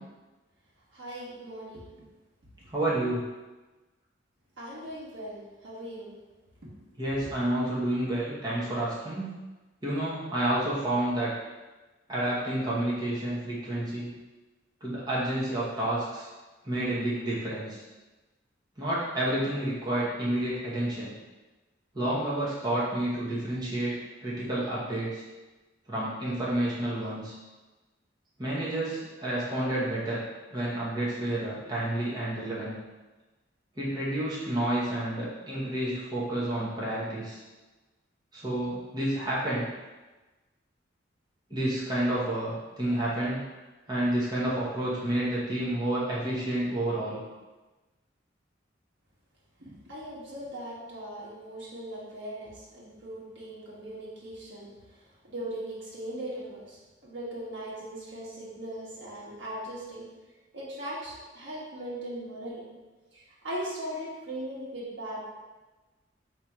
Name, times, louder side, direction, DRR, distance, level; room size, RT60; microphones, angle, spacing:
voice 1, 0.9-1.9 4.6-6.1 49.6-54.7 55.3-60.1 60.5-62.6 63.1-65.3, right 1 dB, 75° right, -6 dB, 1.3 m, -39 dB
voice 2, 2.7-3.2 7.0-9.3 9.8-11.3 12.1-14.1 14.8-16.3 16.6-17.8 18.8-21.1 21.9-25.2 25.9-27.3 28.4-30.2 30.5-32.7 33.8-37.4 38.3-39.7 41.5-43.4 43.9-47.2, right 1 dB, 20° right, -8 dB, 1.0 m, -30 dB
3.3 x 2.9 x 4.6 m, 1.2 s
head